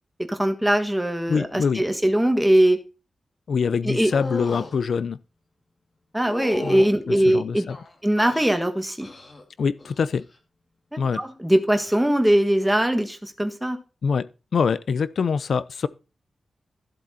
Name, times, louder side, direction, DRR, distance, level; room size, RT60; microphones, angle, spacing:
voice 1, 0.3-2.8 3.8-4.1 6.1-7.6 8.0-9.1 10.9-13.8, right 1 dB, 5° right, 1.5 m, -21 dB
voice 2, 1.3-1.8 3.5-5.2 6.6-7.8 9.6-10.2 11.0-11.2 14.0-14.3 14.5-15.9, left 6 dB, 60° left, 0.6 m, -24 dB
sound 1, 4.1-4.7 6.2-6.9 7.7-8.5 9.0-9.4 9.8-10.2 11.8-12.0, left 2 dB, 30° left, 2.4 m, -35 dB
14.5 x 7.8 x 4.3 m
wide cardioid pair, 175°, 0 cm